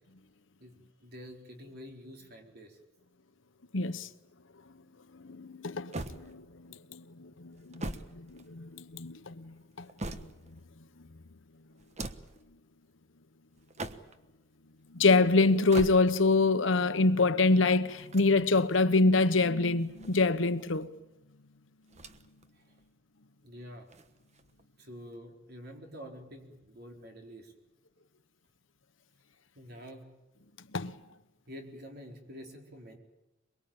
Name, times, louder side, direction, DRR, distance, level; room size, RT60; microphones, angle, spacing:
voice 1, 1.0-2.8 22.5-22.8 23.4-23.9 24.8-27.5 29.5-30.1 31.5-33.0, equal, 55° right, 4.3 m, -47 dB
voice 2, 3.7-4.1 5.1-9.8 10.1-10.3 14.9-20.9 30.7-30.9, left 3 dB, 80° left, 1.2 m, -26 dB
sound 1, 5.9-6.7 7.5-8.9 9.6-10.6 11.8-12.4 13.6-14.3 15.5-16.4 17.9-18.8 19.7-20.7 21.9-22.5 22.8-22.9 23.9-24.6, right 2 dB, 35° right, 1.3 m, -42 dB
23.0 x 23.0 x 8.9 m
head